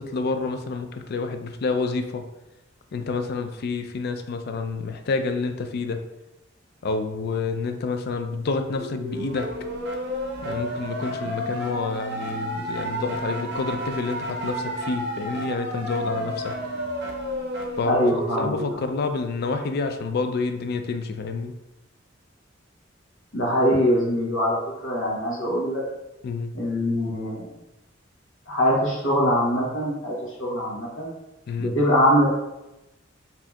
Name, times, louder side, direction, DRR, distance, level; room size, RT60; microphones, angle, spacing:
voice 1, 0.0-2.2 2.9-6.0 6.8-9.5 10.4-16.5 17.8-21.5 26.2-26.5 31.5-31.7, left 4 dB, 55° left, 7 dB, 0.3 m, -28 dB
sound 1, 8.7-18.7, equal, 60° right, 0.6 m, -31 dB
voice 2, 17.8-18.5 23.3-24.6 24.8-25.8 26.5-27.5 28.5-31.1 31.6-32.3, equal, 85° left, -4 dB, 1.0 m, -22 dB
4.2 x 2.7 x 2.3 m, 0.94 s
head